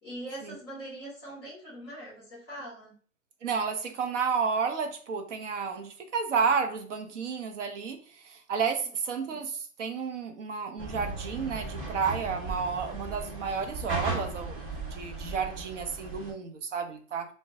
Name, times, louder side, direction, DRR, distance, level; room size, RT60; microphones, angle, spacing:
voice 1, 0.0-2.9, right 1 dB, 5° left, -19 dB, 0.3 m, -42 dB
voice 2, 3.4-17.3, right 6 dB, 60° right, 7 dB, 0.8 m, -31 dB
sound 1, 10.8-16.3, right 3 dB, 30° right, 1.4 m, -36 dB
4.4 x 2.2 x 2.7 m, 0.43 s
hypercardioid pair, 150°, 41 cm